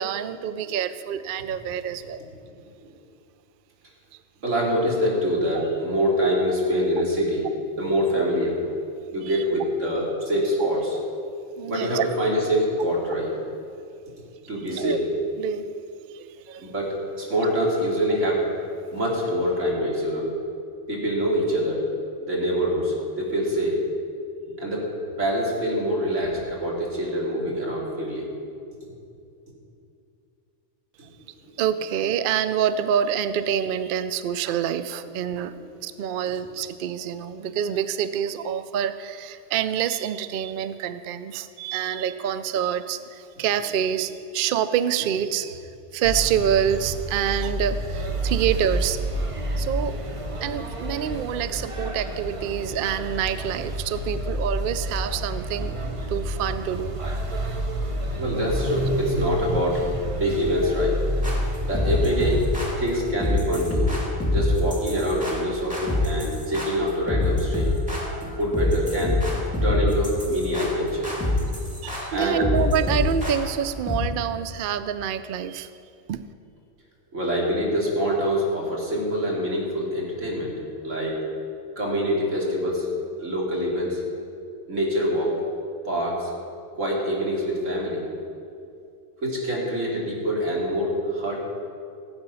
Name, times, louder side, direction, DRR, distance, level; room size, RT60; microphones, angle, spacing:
voice 1, 0.0-2.2 5.5-5.6 9.2-9.4 11.6-12.1 14.7-15.0 15.4-15.7 16.1-16.7 31.6-35.5 35.8-49.0 49.6-50.1 50.4-55.8 56.1-57.0 71.8-75.7 76.1-76.2, right 9 dB, 60° right, 12 dB, 0.6 m, -27 dB
voice 2, 4.4-7.5 7.8-8.6 9.1-11.0 11.7-13.3 14.5-15.0 16.6-18.5 18.9-20.3 20.9-21.8 22.2-23.8 24.6-24.9 25.2-28.3 58.2-59.8 60.1-61.0 61.7-62.4 62.8-64.0 64.3-67.7 68.2-69.2 69.6-71.1 72.1-72.4 77.1-80.5 80.8-81.2 81.8-82.9 83.2-84.0 84.7-85.4 85.9-86.3 86.7-88.0 89.2-91.4, equal, 85° right, -4 dB, 3.0 m, -25 dB
sound 1, 46.0-62.8, right 1 dB, 30° right, 0.8 m, -29 dB
sound 2, 61.2-74.0, left 2 dB, 5° right, 2.4 m, -26 dB
16.0 x 8.0 x 5.6 m, 2.5 s
omnidirectional pair, 1.3 m